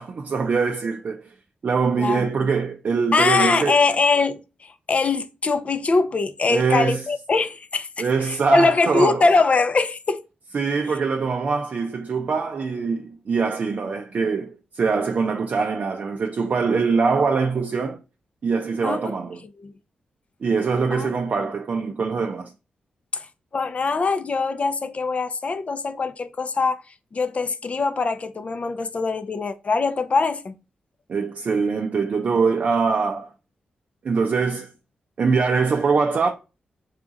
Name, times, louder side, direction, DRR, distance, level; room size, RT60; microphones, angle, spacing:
voice 1, 0.0-1.3 1.6-3.8 6.5-7.0 8.0-9.3 10.5-18.0 18.4-19.4 20.4-22.5 31.1-33.3 34.0-34.7 35.2-36.3, right 5 dB, 60° right, 0.5 m, -23 dB
voice 2, 3.1-10.2 18.8-19.1 19.6-19.7 20.9-21.1 23.1-23.3 23.5-26.8 27.1-30.5, left 4 dB, 50° left, 0.5 m, -22 dB
3.6 x 2.4 x 3.9 m
cardioid pair, 55°, 3 cm